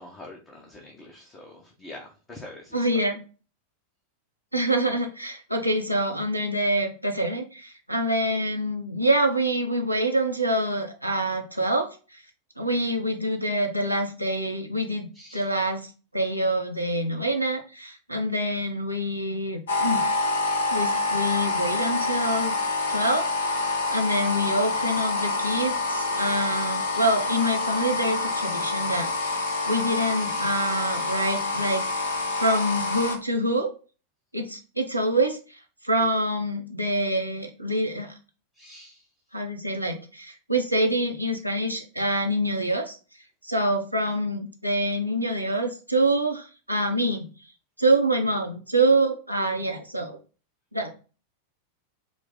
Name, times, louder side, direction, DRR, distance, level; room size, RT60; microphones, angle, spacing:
voice 1, 0.0-3.0 15.1-15.5 26.9-27.2 38.5-39.1, left 2 dB, 20° left, 0 dB, 0.8 m, -45 dB
voice 2, 2.7-3.2 4.5-12.2 12.6-15.1 15.3-20.1 20.7-22.6 22.9-23.6 23.9-31.8 32.3-33.7 34.3-38.2 39.3-43.0 43.4-47.3 47.8-50.2 50.7-50.9, right 1 dB, 90° right, 3 dB, 0.7 m, -26 dB
sound 1, 19.7-33.2, left 2 dB, 65° left, 0.8 m, -27 dB
4.7 x 2.1 x 3.7 m, 0.35 s
figure-of-eight pair, 90°, 0 cm